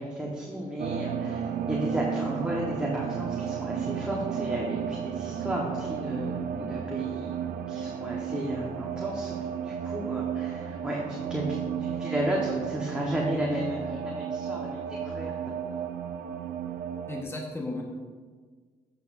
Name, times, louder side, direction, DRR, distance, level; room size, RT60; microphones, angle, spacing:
voice 1, 0.0-15.3, equal, 5° right, -4 dB, 1.4 m, -33 dB
sound 1, 0.8-17.2, right 8 dB, 70° right, 0.5 m, -33 dB
voice 2, 17.1-17.8, left 2 dB, 15° left, -1 dB, 1.4 m, -34 dB
10.0 x 6.1 x 2.7 m, 1.5 s
supercardioid pair, 55°, 17 cm